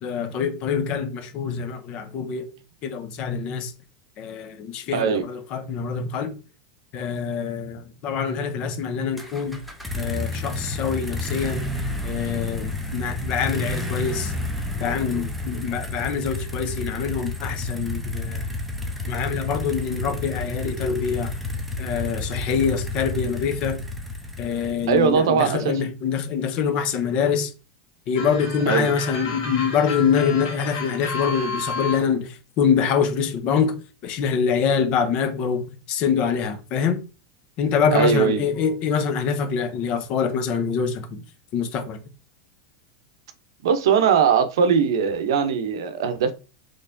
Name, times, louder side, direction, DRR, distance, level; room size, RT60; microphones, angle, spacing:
voice 1, 0.0-2.5 2.8-3.7 4.2-6.3 6.9-9.6 10.0-11.6 12.0-14.3 14.8-18.5 19.1-21.3 21.8-23.8 24.4-27.5 28.1-33.8 34.0-37.0 37.6-41.2 41.5-42.0, left 6 dB, 40° left, 0.6 m, -25 dB
voice 2, 4.9-5.2 24.9-25.8 28.7-28.9 37.9-38.4 43.6-46.3, right 6 dB, 80° right, 0.6 m, -20 dB
sound 1, 9.2-25.1, left 2 dB, ahead, 0.7 m, -30 dB
sound 2, 28.1-32.1, left 4 dB, 65° left, 1.6 m, -32 dB
4.2 x 3.1 x 2.6 m
supercardioid pair, 140°, 2 cm